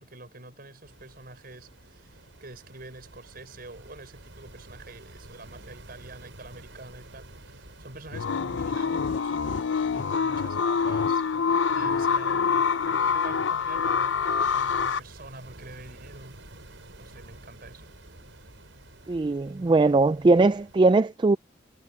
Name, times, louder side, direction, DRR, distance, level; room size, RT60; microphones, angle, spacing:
voice 1, 0.0-9.4 9.9-11.2 11.7-16.4 17.0-17.9, right 2 dB, 50° right, 5.1 m, -46 dB
sound 1, 0.8-20.8, right 1 dB, 80° right, 5.2 m, -50 dB
sound 2, 8.1-15.0, left 6 dB, 75° left, 0.6 m, -25 dB
voice 2, 19.1-21.4, right 3 dB, 25° right, 0.3 m, -20 dB
head